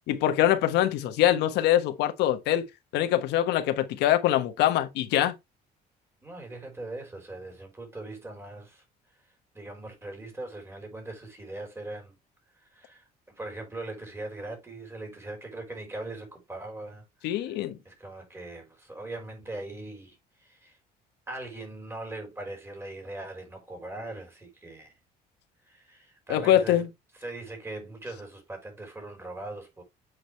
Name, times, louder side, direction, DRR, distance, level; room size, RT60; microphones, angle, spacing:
voice 1, 0.1-2.6 2.9-5.3 17.2-17.8 26.3-26.9, left 12 dB, 85° left, 1.3 m, -23 dB
voice 2, 6.2-8.8 9.5-12.1 12.6-17.6 17.8-20.8 21.3-24.9 25.6-26.8 27.1-29.8, right 2 dB, 15° right, 4.4 m, -40 dB
8.0 x 5.1 x 3.3 m
cardioid pair, 110°, 17 cm